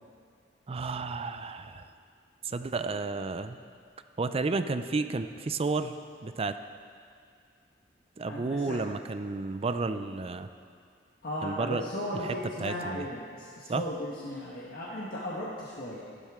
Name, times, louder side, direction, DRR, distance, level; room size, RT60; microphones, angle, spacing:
voice 1, 0.7-1.9 2.4-3.6 4.2-5.9 6.2-6.6 8.2-10.5 11.4-11.9 12.2-13.1 13.7-13.8, right 3 dB, 30° right, 10 dB, 0.4 m, -32 dB
voice 2, 8.3-8.8 11.2-16.0, left 1 dB, 55° left, -6 dB, 1.3 m, -36 dB
14.0 x 12.0 x 3.7 m, 2.2 s
head